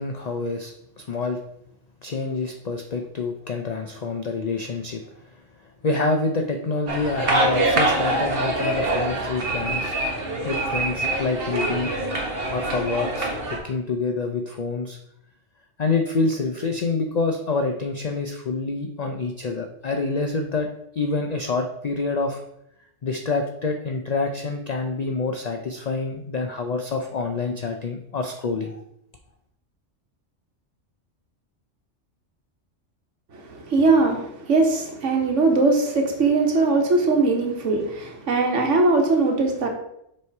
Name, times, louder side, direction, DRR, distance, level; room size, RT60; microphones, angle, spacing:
voice 1, 0.0-1.4 2.0-5.0 5.8-9.9 10.4-11.9 12.5-15.0 15.8-20.7 21.0-22.4 23.0-28.8, left 3 dB, 50° left, 4 dB, 0.5 m, -27 dB
sound 1, 6.9-13.6, right 2 dB, 50° right, 1.4 m, -25 dB
voice 2, 33.3-39.7, right 3 dB, 80° right, 3 dB, 1.4 m, -20 dB
7.1 x 3.2 x 4.6 m, 0.78 s
omnidirectional pair, 1.2 m